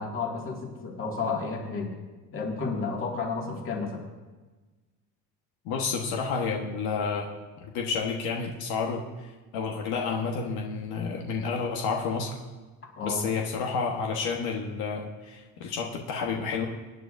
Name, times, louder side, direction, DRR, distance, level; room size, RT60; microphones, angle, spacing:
voice 1, 0.0-1.9 2.3-4.0 13.0-13.2, left 4 dB, 35° left, 0 dB, 2.2 m, -31 dB
voice 2, 5.6-7.3 7.6-9.0 9.5-12.4 13.0-16.7, left 5 dB, 75° left, 0 dB, 1.4 m, -30 dB
23.5 x 9.4 x 2.6 m, 1.3 s
cardioid pair, 130°, 37 cm